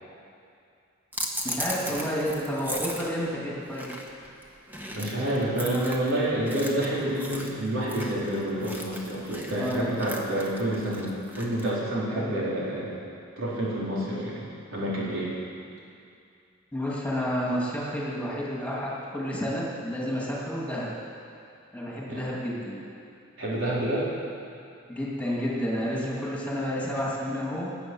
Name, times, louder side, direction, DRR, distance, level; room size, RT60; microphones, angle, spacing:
sound 1, 1.1-11.8, equal, 10° right, 1.3 m, -37 dB
voice 1, 1.4-3.9 9.6-9.8 12.1-12.4 16.7-20.9 21.7-22.8 24.9-27.8, equal, 5° left, -5 dB, 2.5 m, -30 dB
voice 2, 4.9-12.9 13.4-14.4 14.7-15.3 22.1-22.2 23.4-24.1, right 1 dB, 80° right, -7 dB, 4.3 m, -28 dB
20.0 x 8.3 x 6.3 m, 2.5 s
head